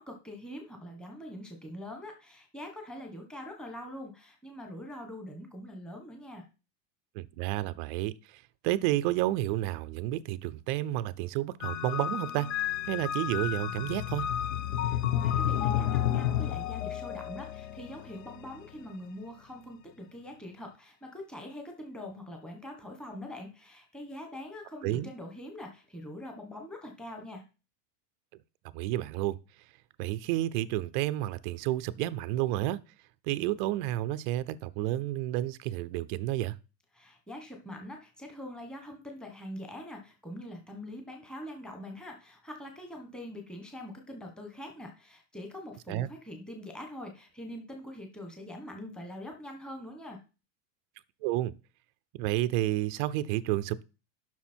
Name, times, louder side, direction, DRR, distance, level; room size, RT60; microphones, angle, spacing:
voice 1, 0.0-6.4 14.8-27.4 36.9-50.2, left 1 dB, ahead, 1.3 m, -43 dB
voice 2, 7.1-12.5 12.9-14.3 24.8-25.1 28.7-29.4 30.0-32.8 33.2-36.6 45.9-46.1 51.2-51.5 52.1-53.8, right 15 dB, 40° right, 0.5 m, -30 dB
sound 1, 11.6-18.9, left 11 dB, 70° left, 0.9 m, -31 dB
11.5 x 6.1 x 4.5 m
supercardioid pair, 170°, 40 cm